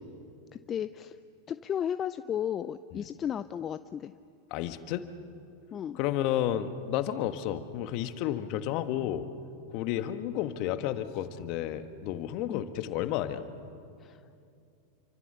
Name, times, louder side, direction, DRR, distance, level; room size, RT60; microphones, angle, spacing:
voice 1, 0.5-1.2 1.5-4.1 5.7-6.0 12.5-12.6 14.0-14.2, left 9 dB, 30° left, 12 dB, 0.6 m, -34 dB
voice 2, 4.5-5.0 5.9-9.3 9.7-13.5, left 11 dB, 50° left, 10 dB, 1.5 m, -31 dB
28.0 x 24.5 x 6.9 m, 2.5 s
hypercardioid pair, 95°, 0 cm